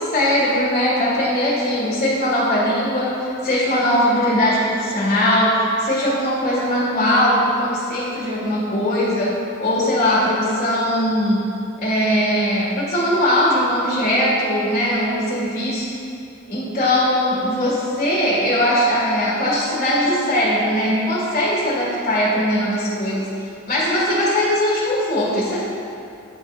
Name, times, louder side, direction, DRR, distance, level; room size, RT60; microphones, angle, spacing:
voice 1, 0.0-11.4 11.8-15.9 16.5-23.3 23.7-25.6, equal, 40° left, -8 dB, 1.5 m, -20 dB
9.8 x 4.9 x 2.5 m, 2.6 s
head